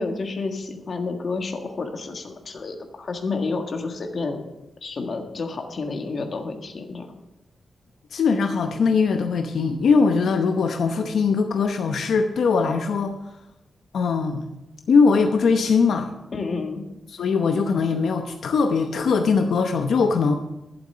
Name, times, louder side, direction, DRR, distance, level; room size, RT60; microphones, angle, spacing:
voice 1, 0.0-4.4 4.8-7.1 16.3-16.8, left 3 dB, 50° left, 5 dB, 1.6 m, -30 dB
voice 2, 8.1-13.2 13.9-14.5 14.9-16.1 17.1-20.3, left 5 dB, 85° left, 6 dB, 0.8 m, -21 dB
12.0 x 7.9 x 6.8 m, 0.92 s
wide cardioid pair, 145°, 0 cm